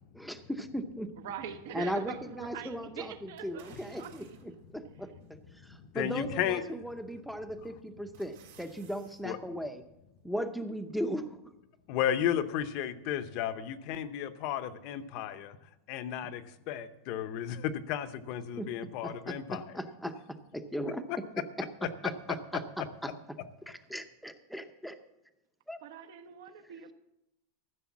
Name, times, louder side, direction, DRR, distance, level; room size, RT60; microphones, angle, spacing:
voice 1, 0.1-1.1 1.7-9.8 10.2-11.4 18.6-18.7 19.0-21.0 22.0-23.1 23.7-25.0 25.7-25.8, equal, ahead, 8 dB, 0.7 m, -38 dB
voice 2, 1.2-4.4 25.8-26.9, right 9 dB, 65° right, 9 dB, 1.1 m, -43 dB
sound 1, 3.4-4.6 5.2-5.3 6.9-7.2 7.6-9.2 9.6-9.7, right 7 dB, 85° right, 3.5 m, -58 dB
voice 3, 5.6-6.6 9.2-9.4 11.9-15.6 15.9-19.8 21.1-21.2, left 10 dB, 40° left, 11 dB, 0.7 m, -34 dB
14.0 x 6.8 x 7.2 m, 0.88 s
supercardioid pair, 175°, 0 cm